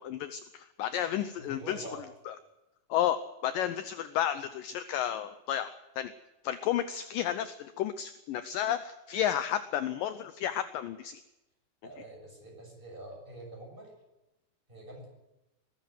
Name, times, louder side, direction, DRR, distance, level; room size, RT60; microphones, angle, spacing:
voice 1, 0.0-1.9 2.3-2.4 2.9-5.7 6.0-6.1 6.4-11.2, left 11 dB, 80° left, 12 dB, 2.0 m, -32 dB
voice 2, 1.4-2.0 11.8-13.9 14.7-15.1, right 1 dB, 10° right, 1 dB, 6.6 m, -46 dB
21.0 x 13.5 x 9.2 m, 0.97 s
omnidirectional pair, 4.8 m